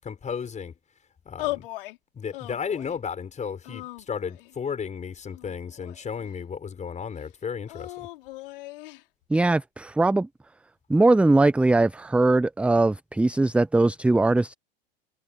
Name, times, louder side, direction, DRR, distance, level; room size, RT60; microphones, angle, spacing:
voice 1, 0.0-0.7 1.3-1.7 2.1-8.1, left 6 dB, 25° left, 5.6 m, -34 dB
sound 1, 1.4-2.0 2.3-3.0 3.6-4.5 5.3-6.3 7.7-9.0, left 19 dB, 65° left, 4.0 m, -37 dB
voice 2, 9.3-10.3 10.9-14.5, right 2 dB, 5° right, 0.6 m, -20 dB
hypercardioid pair, 85°, 29 cm